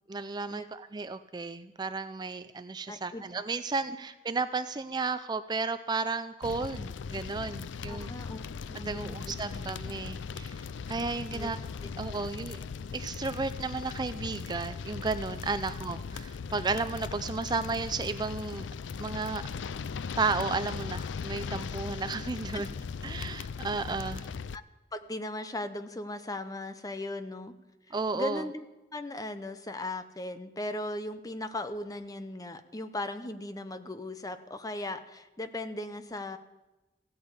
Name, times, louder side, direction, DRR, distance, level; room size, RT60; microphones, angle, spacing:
voice 1, 0.1-8.1 8.7-11.6 12.0-12.6 12.9-18.7 19.0-19.4 20.2-22.7 23.0-24.3 27.9-28.4, right 4 dB, 25° right, 11 dB, 0.4 m, -33 dB
voice 2, 2.9-3.3 7.9-9.7 11.3-11.5 11.8-11.9 22.5-22.6 24.2-24.6 24.9-27.5 28.1-28.7 28.9-36.4, left 1 dB, 20° left, 10 dB, 0.7 m, -38 dB
sound 1, 6.4-24.6, left 5 dB, 85° left, 0.4 m, -38 dB
15.5 x 8.6 x 8.2 m, 1.1 s
head